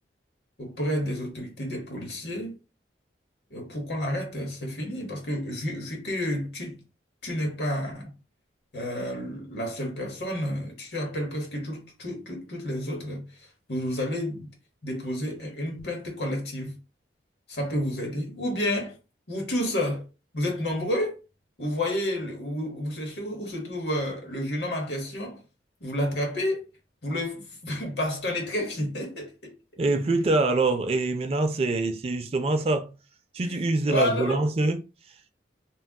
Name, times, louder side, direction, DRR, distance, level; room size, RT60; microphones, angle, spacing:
voice 1, 0.6-2.6 3.5-6.8 7.2-8.1 8.7-13.2 13.7-14.5 14.8-16.8 17.5-19.0 19.3-20.0 20.3-21.1 21.6-25.4 25.8-26.6 27.0-29.5 33.4-33.6 33.9-34.4, left 1 dB, 65° left, 1.0 m, -30 dB
voice 2, 29.8-32.9 33.3-34.8, right 2 dB, 35° right, 0.3 m, -25 dB
3.7 x 2.2 x 2.2 m
head